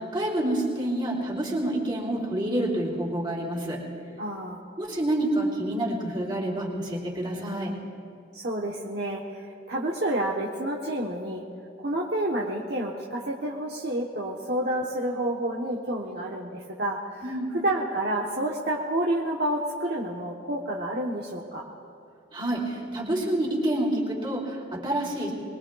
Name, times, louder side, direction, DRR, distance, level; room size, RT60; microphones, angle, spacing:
voice 1, 0.0-3.8 4.8-7.8 17.2-17.6 22.3-25.3, right 1 dB, 25° right, -3 dB, 3.1 m, -28 dB
voice 2, 4.2-4.6 8.3-11.4 11.8-17.2 17.6-21.6, right 1 dB, 60° right, -2 dB, 1.1 m, -29 dB
24.0 x 21.5 x 2.4 m, 2.3 s
head